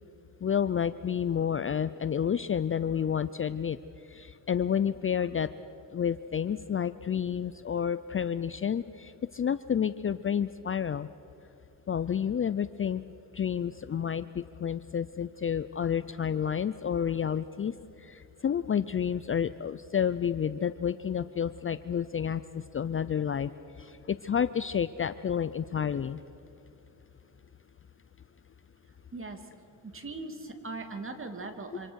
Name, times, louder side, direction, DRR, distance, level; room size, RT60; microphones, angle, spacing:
voice 1, 0.4-3.8 4.1-5.5 5.9-11.1 11.9-13.0 13.3-23.5 23.8-26.2, left 8 dB, 30° left, 14 dB, 0.5 m, -30 dB
voice 2, 29.1-29.5 29.8-31.9, right 3 dB, 30° right, 6 dB, 2.8 m, -40 dB
26.5 x 25.5 x 6.5 m, 2.8 s
cardioid pair, 85°, 42 cm